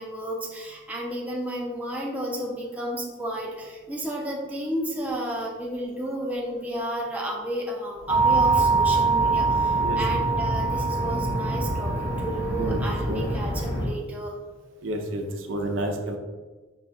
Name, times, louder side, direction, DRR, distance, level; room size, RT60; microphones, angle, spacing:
voice 1, 0.0-14.4, right 1 dB, 5° right, -2 dB, 0.6 m, -32 dB
sound 1, 8.1-13.9, right 3 dB, 90° left, 1.1 m, -24 dB
voice 2, 9.8-10.2 12.6-12.8 13.1-13.2 14.8-16.2, right 1 dB, 80° right, 3 dB, 0.6 m, -30 dB
5.6 x 2.3 x 4.0 m, 1.3 s
head